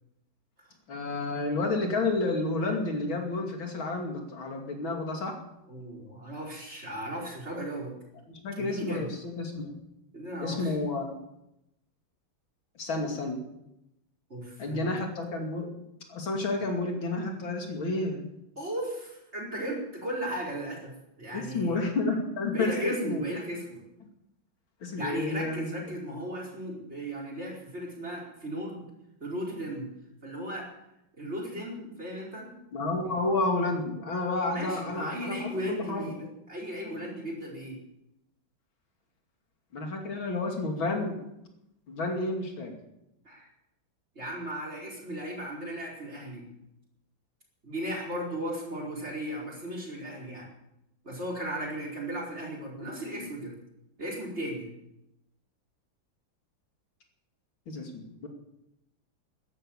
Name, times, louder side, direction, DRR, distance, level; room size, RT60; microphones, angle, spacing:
voice 1, 0.9-5.3 8.3-9.7 10.4-11.2 12.7-13.4 14.6-15.7 16.1-18.2 21.3-23.2 24.8-25.7 26.0-26.2 32.7-36.1 39.7-41.2 41.9-42.7 52.8-53.3 57.7-58.3, left 2 dB, 80° left, 2 dB, 3.4 m, -31 dB
voice 2, 5.7-7.9 8.6-9.1 10.1-10.7 14.3-14.9 18.6-20.9 21.2-21.8 22.5-23.8 25.0-28.9 29.2-29.9 30.2-30.7 31.2-32.5 33.1-33.2 34.5-37.8 43.2-43.5 44.1-46.5 47.6-50.5 51.0-53.5 54.0-54.7, right 1 dB, 30° right, -1 dB, 4.9 m, -36 dB
13.5 x 11.5 x 8.6 m, 0.86 s
omnidirectional pair, 2.1 m